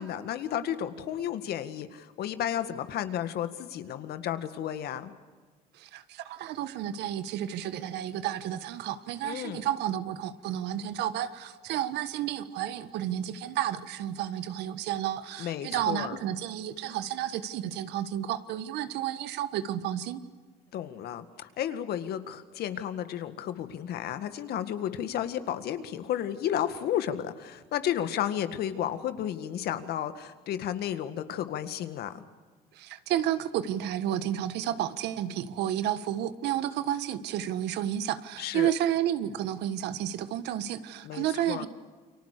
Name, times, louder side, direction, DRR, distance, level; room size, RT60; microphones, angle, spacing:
voice 1, 0.0-5.1 9.2-9.7 15.4-16.2 20.7-32.2 38.4-38.7 41.0-41.7, left 10 dB, 70° left, 10 dB, 1.9 m, -32 dB
voice 2, 5.7-20.2 32.7-41.7, right 11 dB, 85° right, 13 dB, 1.4 m, -31 dB
29.5 x 24.0 x 6.8 m, 1.4 s
cardioid pair, 110°, 17 cm